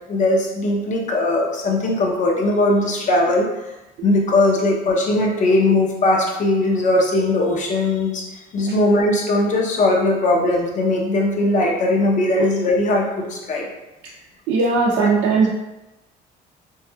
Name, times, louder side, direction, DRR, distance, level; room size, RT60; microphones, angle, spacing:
voice 1, 0.1-3.7 4.0-8.3 8.5-13.7 15.0-15.1, left 2 dB, 45° left, -1 dB, 0.7 m, -19 dB
voice 2, 14.5-15.5, right 4 dB, 90° right, -4 dB, 0.5 m, -18 dB
3.1 x 2.5 x 2.2 m, 1.0 s
cardioid pair, 110°, 17 cm